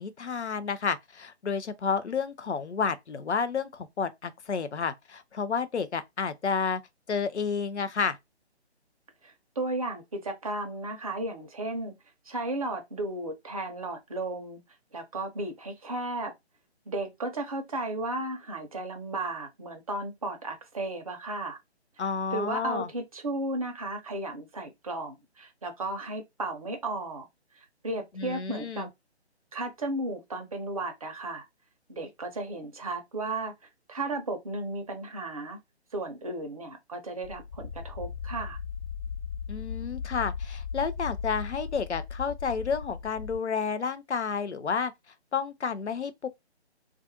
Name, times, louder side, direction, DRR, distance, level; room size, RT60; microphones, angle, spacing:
voice 1, 0.0-6.8 7.1-8.2 22.0-22.9 28.2-28.9 39.5-44.9 45.3-46.3, left 5 dB, 80° left, 0.6 m, -30 dB
voice 2, 9.2-11.9 12.3-14.6 14.9-16.3 16.9-21.6 22.0-22.1 22.3-27.3 27.6-28.9 29.5-31.5 31.9-33.5 33.9-35.6 35.9-38.6, right 2 dB, 30° right, 0.6 m, -34 dB
sound 1, 37.2-43.4, left 6 dB, 65° left, 0.9 m, -37 dB
2.4 x 2.4 x 2.6 m
figure-of-eight pair, 145°, 34 cm